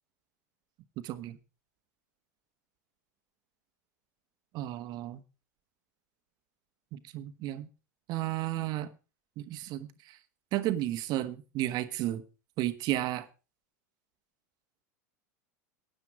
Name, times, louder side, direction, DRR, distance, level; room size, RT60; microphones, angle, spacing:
voice 1, 1.0-1.4 4.5-5.2 6.9-7.7 8.1-8.9 9.4-10.2 10.5-12.2 12.6-13.3, right 14 dB, 50° right, 10 dB, 1.5 m, -33 dB
16.0 x 9.8 x 4.8 m, 0.32 s
hypercardioid pair, 90°, 9 cm